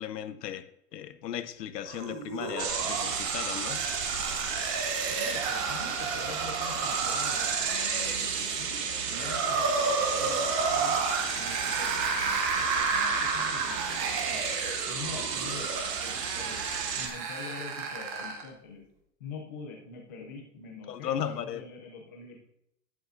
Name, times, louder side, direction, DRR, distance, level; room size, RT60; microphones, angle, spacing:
voice 1, 0.0-4.2 4.6-4.7 20.9-21.6, left 10 dB, 80° left, 12 dB, 0.9 m, -36 dB
sound 1, 1.9-18.5, right 4 dB, 20° right, 0.8 m, -32 dB
sound 2, 2.6-17.1, right 6 dB, 85° right, 1.9 m, -33 dB
voice 2, 5.2-14.4 14.9-16.6 17.0-18.8 19.2-22.4, left 4 dB, 15° left, 0 dB, 0.4 m, -45 dB
11.0 x 9.4 x 2.6 m, 0.76 s
hypercardioid pair, 160°, 48 cm